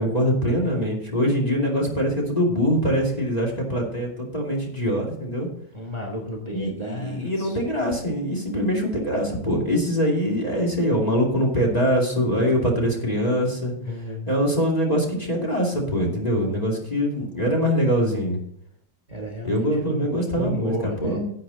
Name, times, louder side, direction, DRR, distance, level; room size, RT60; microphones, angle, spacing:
voice 1, 0.0-5.5 6.5-13.7 14.3-18.4 19.4-20.7 21.0-21.3, equal, 20° left, -1 dB, 2.6 m, -23 dB
voice 2, 5.7-7.6 13.8-14.3 19.1-21.2, equal, 25° right, -1 dB, 1.6 m, -32 dB
11.5 x 8.7 x 4.0 m, 0.72 s
omnidirectional pair, 2.1 m